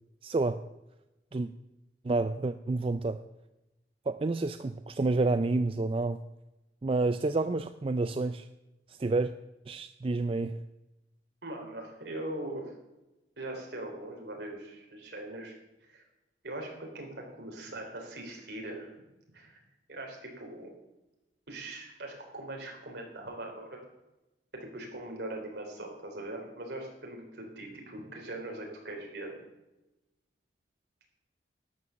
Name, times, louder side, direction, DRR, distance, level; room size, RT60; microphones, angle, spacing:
voice 1, 0.2-0.6 1.3-1.5 2.0-3.2 4.1-6.2 6.8-8.5 8.9-9.3 9.7-10.6, right 3 dB, 30° right, 10 dB, 0.4 m, -29 dB
voice 2, 11.4-12.8 13.4-16.1 16.4-19.0 19.3-19.6 19.9-20.7 21.5-23.8 24.5-29.5, right 1 dB, 65° right, 1 dB, 3.7 m, -41 dB
12.5 x 9.5 x 7.0 m, 0.99 s
head